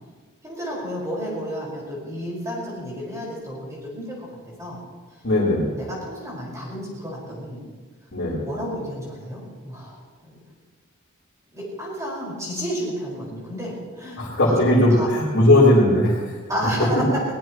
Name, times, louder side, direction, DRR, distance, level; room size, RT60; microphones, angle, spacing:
voice 1, 0.4-4.2 4.6-4.8 5.8-7.6 8.5-10.3 11.5-15.1 16.5-17.0, equal, 15° right, -5 dB, 5.2 m, -31 dB
voice 2, 5.2-5.7 8.1-8.4 14.2-16.2, left 1 dB, 50° left, -8 dB, 4.3 m, -17 dB
22.5 x 19.0 x 3.1 m, 1.4 s
head